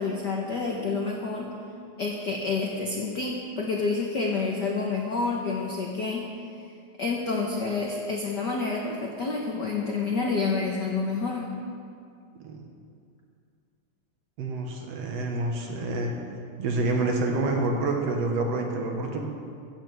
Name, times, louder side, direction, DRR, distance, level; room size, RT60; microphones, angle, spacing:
voice 1, 0.0-1.5 2.0-6.2 7.0-11.5, left 4 dB, 70° left, 0 dB, 1.0 m, -28 dB
voice 2, 14.4-16.1 16.6-19.2, right 2 dB, 65° right, 1 dB, 2.3 m, -27 dB
16.0 x 14.0 x 3.5 m, 2.3 s
omnidirectional pair, 3.4 m